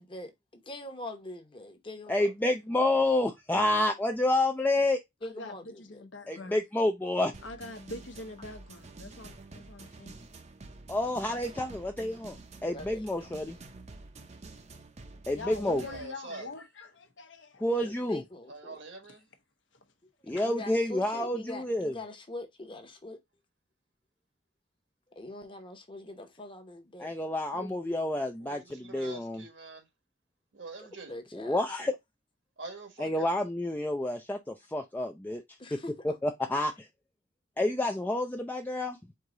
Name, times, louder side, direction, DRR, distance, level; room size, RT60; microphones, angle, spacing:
voice 1, 0.0-2.3 5.2-6.0 6.3-6.5 12.7-13.3 17.8-18.8 20.2-23.2 25.1-27.1 30.8-31.9 35.6-36.2, left 2 dB, 25° left, 1.0 m, -43 dB
voice 2, 2.1-5.0 6.3-7.3 10.9-12.4 12.6-13.6 15.3-15.8 17.6-18.2 20.3-21.9 27.0-29.4 31.3-31.9 33.0-35.4 36.2-36.7 37.6-39.0, left 1 dB, 10° left, 0.4 m, -29 dB
voice 3, 5.8-6.6 7.4-10.1 15.3-17.6 20.3-20.4 27.5-27.8, left 2 dB, 80° left, 1.0 m, -43 dB
sound 1, 7.3-16.1, right 3 dB, 35° right, 0.6 m, -48 dB
voice 4, 15.7-16.5 18.5-19.2 28.4-29.9 30.5-31.1 32.6-33.3, right 3 dB, 75° right, 1.4 m, -45 dB
4.7 x 2.8 x 3.8 m
head